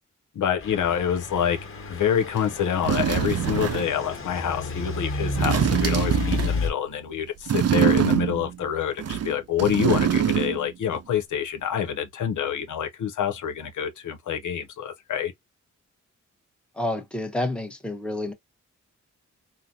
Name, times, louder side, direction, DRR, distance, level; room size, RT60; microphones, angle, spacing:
voice 1, 0.3-1.6 1.9-15.3, left 8 dB, 85° left, 0.8 m, -27 dB
Truck / Idling, 0.6-6.7, left 3 dB, 45° left, 1.3 m, -31 dB
chair plastic drag across stone or concrete floor, 2.4-2.5 2.8-4.0 5.3-6.7 7.5-8.6 9.0-10.7 10.9-11.0, right 9 dB, 55° right, 0.6 m, -24 dB
voice 2, 16.8-18.3, left 1 dB, 5° left, 0.9 m, -29 dB
3.9 x 2.1 x 2.7 m
cardioid pair, 80°, 30 cm